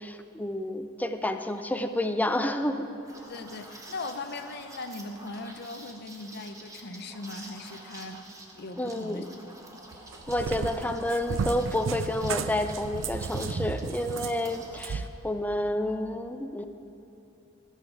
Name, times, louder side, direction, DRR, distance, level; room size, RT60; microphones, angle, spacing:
voice 1, 0.0-2.9 8.8-9.2 10.3-16.6, left 1 dB, 10° left, 8 dB, 0.4 m, -30 dB
Liquid, 3.1-14.9, right 1 dB, 15° right, 1.0 m, -48 dB
voice 2, 3.2-8.2 8.5-9.3 9.7-9.8, left 2 dB, 55° left, 8 dB, 0.6 m, -39 dB
Cat, 9.9-15.1, right 5 dB, 70° right, 0.4 m, -33 dB
14.5 x 5.7 x 6.0 m, 3.0 s
head